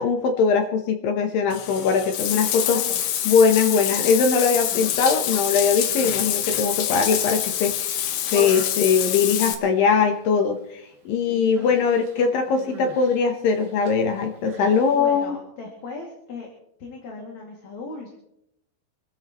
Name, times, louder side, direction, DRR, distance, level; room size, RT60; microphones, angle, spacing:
voice 1, 0.0-2.8 3.3-8.0 8.2-15.3, left 5 dB, 70° left, 5 dB, 2.3 m, -21 dB
Bathtub (filling or washing), 1.5-9.5, left 10 dB, 90° left, 3.6 m, -26 dB
voice 2, 2.3-3.0 11.3-11.9 12.5-12.9 14.4-14.6 14.9-16.5 16.8-18.1, left 3 dB, 45° left, 0 dB, 3.1 m, -38 dB
Human voice, 4.5-5.1 5.7-7.5 7.9-9.9 10.2-10.6 10.9-11.1 11.6-15.2, right 3 dB, 60° right, 3.1 m, -41 dB
27.0 x 13.5 x 3.1 m, 0.78 s
omnidirectional pair, 5.1 m